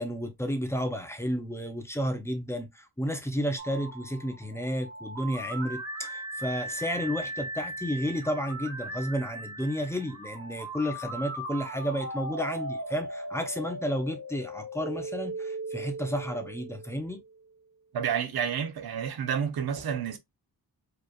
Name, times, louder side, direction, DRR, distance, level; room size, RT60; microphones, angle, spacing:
voice 1, 0.0-17.2, equal, 5° left, 0.7 m, -32 dB
sound 1, 3.6-17.4, right 1 dB, 40° right, 1.1 m, -38 dB
voice 2, 17.9-20.2, right 7 dB, 75° right, 0.9 m, -30 dB
4.9 x 3.1 x 2.4 m
wide cardioid pair, 160°, 37 cm